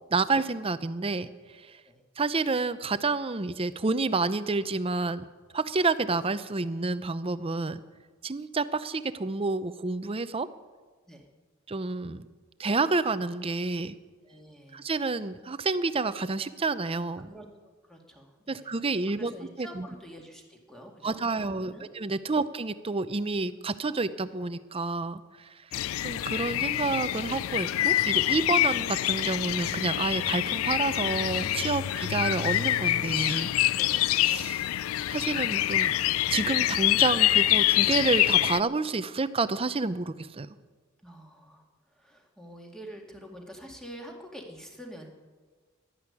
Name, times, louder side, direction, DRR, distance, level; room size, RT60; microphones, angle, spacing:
voice 1, 0.1-1.3 1.6-1.8 2.2-5.3 5.5-7.8 8.2-10.5 11.7-12.3 12.6-14.0 14.7-17.3 18.5-19.9 21.0-25.5 26.0-33.5 34.2-34.7 35.1-35.9 36.3-40.5, right 3 dB, 25° right, 14 dB, 0.6 m, -29 dB
voice 2, 14.2-14.8 17.3-18.7 19.1-22.0 22.3-22.4 23.9-24.0 33.8-34.1 41.0-45.1, equal, 5° left, 1 dB, 2.1 m, -47 dB
sound 1, 25.7-38.6, left 14 dB, 80° left, 0.3 m, -26 dB
12.0 x 10.5 x 9.8 m, 1.4 s
head